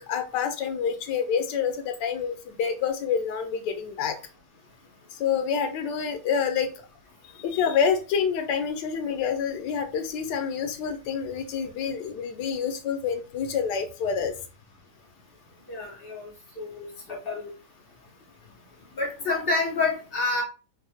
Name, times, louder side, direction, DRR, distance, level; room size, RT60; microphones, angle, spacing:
voice 1, 0.0-4.2 5.1-6.7 7.4-14.3, left 7 dB, 85° left, 6 dB, 1.2 m, -27 dB
voice 2, 15.7-16.3 16.6-17.5 19.0-20.4, left 3 dB, 45° left, -1 dB, 0.9 m, -28 dB
4.6 x 2.1 x 2.7 m, 0.34 s
omnidirectional pair, 1.8 m